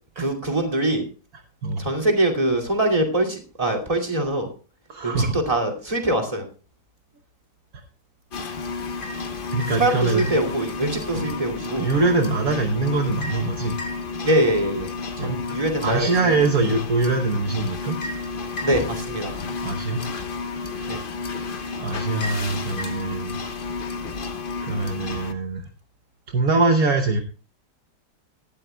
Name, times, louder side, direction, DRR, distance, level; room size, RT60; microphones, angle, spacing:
voice 1, 0.2-1.0 1.8-4.5 5.0-6.5 9.7-11.9 14.2-14.9 15.2-16.1 18.6-19.3 20.9-21.0, right 1 dB, 20° right, 1 dB, 2.6 m, -23 dB
voice 2, 4.9-5.3 9.5-10.3 11.1-11.3 11.8-13.7 15.2-15.4 15.8-18.0 19.6-20.1 21.8-23.4 24.6-25.7 26.3-27.2, right 3 dB, 60° right, 4 dB, 1.4 m, -23 dB
sound 1, 8.3-25.3, left 4 dB, 40° left, 0.9 m, -31 dB
18.0 x 12.5 x 2.3 m, 0.36 s
omnidirectional pair, 1.8 m